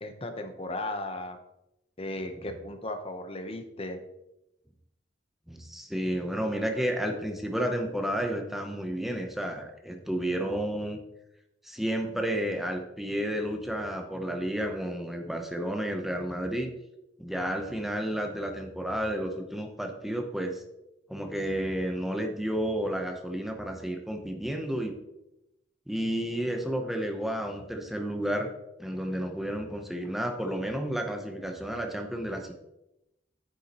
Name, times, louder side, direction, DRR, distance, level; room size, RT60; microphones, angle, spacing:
voice 1, 0.0-1.4 2.0-4.0, left 1 dB, 30° left, 6 dB, 0.9 m, -36 dB
voice 2, 5.5-11.0 11.6-16.7 17.2-20.6 21.1-24.9 25.9-28.5 28.8-32.5, equal, ahead, 3 dB, 0.8 m, -31 dB
9.5 x 7.0 x 3.0 m, 0.90 s
head